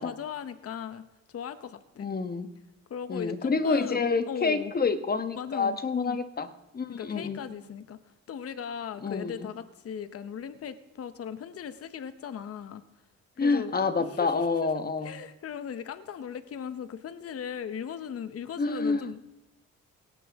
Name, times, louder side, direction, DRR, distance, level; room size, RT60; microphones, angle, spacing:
voice 1, 0.0-2.1 2.9-4.7 5.4-6.2 6.9-8.0 8.3-12.8 13.4-13.8 14.1-14.7 15.0-19.2, left 8 dB, 50° left, 12 dB, 1.0 m, -38 dB
voice 2, 2.0-2.5 3.1-6.5 6.7-7.4 9.0-9.5 13.4-15.1 18.6-19.1, left 4 dB, 30° left, 10 dB, 1.3 m, -28 dB
17.5 x 16.5 x 3.6 m, 0.91 s
cardioid pair, 90°, 30 cm